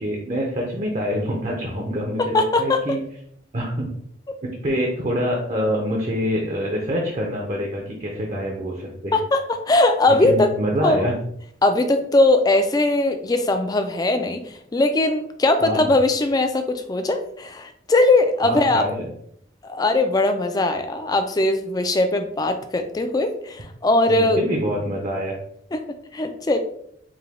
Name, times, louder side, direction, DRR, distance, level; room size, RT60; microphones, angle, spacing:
voice 1, 0.0-3.0 3.5-3.9 4.6-9.2 10.2-11.1 15.6-15.9 18.4-19.1 24.1-25.3, equal, 35° right, 0 dB, 0.6 m, -25 dB
voice 2, 2.3-2.8 9.1-10.5 10.8-11.1 11.6-18.9 19.6-24.4 25.7-25.8 26.1-26.6, left 2 dB, 20° left, 7 dB, 0.3 m, -20 dB
4.8 x 2.2 x 3.5 m, 0.70 s
head